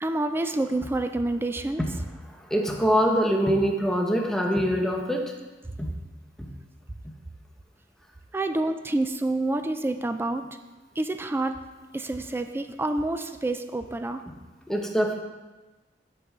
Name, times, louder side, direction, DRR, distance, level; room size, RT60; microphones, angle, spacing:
voice 1, 0.0-1.8 8.3-10.4 11.0-11.5 11.9-14.2, right 2 dB, 15° right, 8 dB, 0.3 m, -28 dB
voice 2, 2.5-5.3 5.8-5.9 6.4-6.5 14.7-15.2, equal, 5° left, 1 dB, 0.8 m, -24 dB
6.5 x 5.6 x 4.8 m, 1.2 s
head